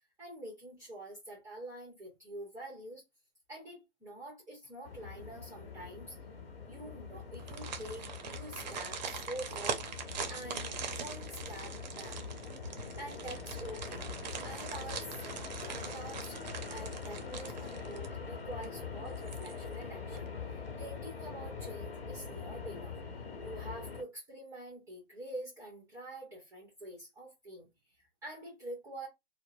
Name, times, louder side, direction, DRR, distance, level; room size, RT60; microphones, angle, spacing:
voice 1, 0.2-3.0 3.5-6.2 6.7-9.9 10.3-12.2 13.0-14.0 14.4-23.0 23.4-29.1, right 1 dB, 10° right, 0.9 m, -46 dB
sound 1, 4.8-24.0, left 5 dB, 85° left, 1.0 m, -43 dB
sound 2, 7.3-18.3 18.6-18.7 19.2-19.8 20.2-20.3, right 6 dB, 50° right, 0.6 m, -42 dB
2.7 x 2.0 x 2.5 m
hypercardioid pair, 140°, 29 cm